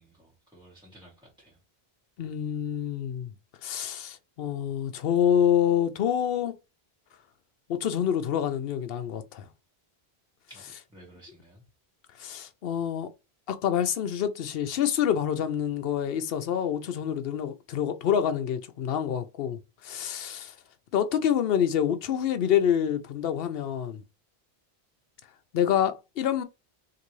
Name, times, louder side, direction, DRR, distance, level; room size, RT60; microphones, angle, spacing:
voice 1, 0.0-1.6 10.5-11.6, right 1 dB, 5° right, 1.0 m, -54 dB
voice 2, 2.2-3.3 3.6-6.5 7.7-9.5 12.2-13.1 13.5-20.5 20.9-24.0 25.5-26.4, left 9 dB, 70° left, 0.8 m, -27 dB
3.8 x 2.6 x 3.0 m
omnidirectional pair, 1.1 m